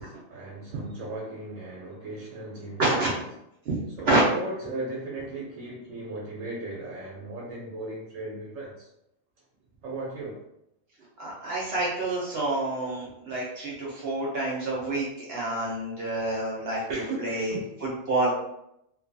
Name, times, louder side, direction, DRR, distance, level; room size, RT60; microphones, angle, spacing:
voice 1, 0.0-3.1 4.0-8.9 9.8-10.4 16.9-17.6, right 2 dB, 85° right, -3 dB, 1.0 m, -37 dB
voice 2, 11.2-16.8 17.2-18.3, right 2 dB, 60° right, -5 dB, 0.7 m, -28 dB
2.6 x 2.2 x 2.5 m, 0.82 s
omnidirectional pair, 1.4 m